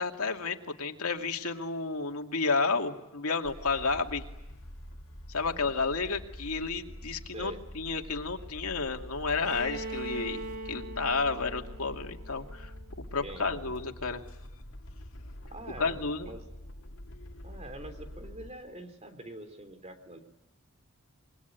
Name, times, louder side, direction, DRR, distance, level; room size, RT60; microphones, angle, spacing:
voice 1, 0.0-4.3 5.3-12.7 13.1-14.2 15.8-16.3, left 4 dB, 80° left, 4 dB, 2.5 m, -31 dB
sound 1, 3.4-18.5, left 1 dB, 65° left, 2.8 m, -46 dB
Bowed string instrument, 9.4-13.3, right 2 dB, 80° right, 4.2 m, -41 dB
voice 2, 13.2-13.7 15.5-16.0 16.2-16.4 17.4-20.2, right 1 dB, 30° right, 7 dB, 3.3 m, -44 dB
26.5 x 23.0 x 9.3 m, 0.92 s
head